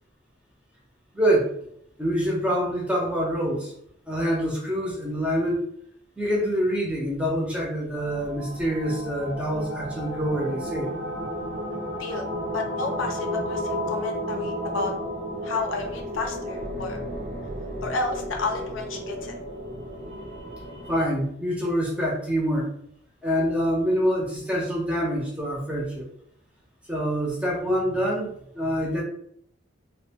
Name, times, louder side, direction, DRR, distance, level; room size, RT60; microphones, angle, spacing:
voice 1, 1.1-1.5 2.0-3.7 4.1-5.7 6.2-10.9 20.9-22.7 23.2-26.1 26.9-29.0, equal, 5° right, -3 dB, 0.5 m, -26 dB
sound 1, 7.9-21.1, equal, 50° right, 0.6 m, -33 dB
voice 2, 12.5-14.9 15.4-17.0 17.8-19.3, left 3 dB, 85° left, 3 dB, 0.5 m, -31 dB
2.4 x 2.1 x 2.7 m, 0.69 s
head